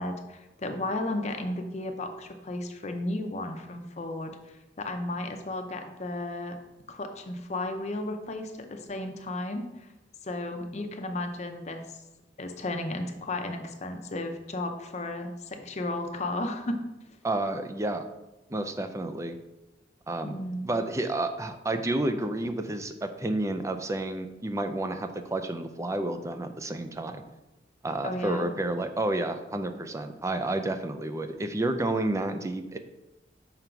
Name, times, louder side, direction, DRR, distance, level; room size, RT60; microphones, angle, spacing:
voice 1, 0.0-6.6 6.9-9.9 10.2-11.8 12.4-16.8 20.2-20.7 28.0-28.5, left 2 dB, 40° left, 5 dB, 0.6 m, -34 dB
voice 2, 17.2-18.0 18.5-19.4 20.1-20.3 20.6-27.2 27.8-32.8, right 2 dB, 15° right, 7 dB, 0.4 m, -30 dB
5.7 x 3.8 x 4.5 m, 1.0 s
head